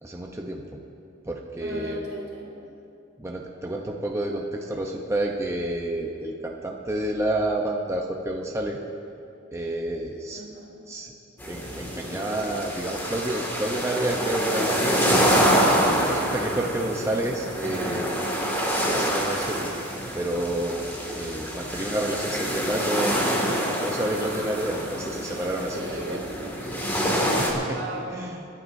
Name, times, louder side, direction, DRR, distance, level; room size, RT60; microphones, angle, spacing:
voice 1, 0.0-0.8 1.3-2.1 3.2-8.8 9.5-10.4 10.9-11.1 11.5-15.1 15.8-18.2 18.9-19.7 20.1-20.8 21.1-23.2 23.5-26.2 27.4-27.8 28.1-28.5, right 1 dB, 15° right, 0 dB, 0.8 m, -29 dB
voice 2, 1.6-2.5 10.3-10.8 25.7-26.3 27.6-28.2, right 2 dB, 70° right, -3 dB, 3.3 m, -37 dB
sound 1, 11.4-27.5, equal, 10° left, 2.1 m, -26 dB
28.0 x 11.0 x 2.7 m, 2.7 s
head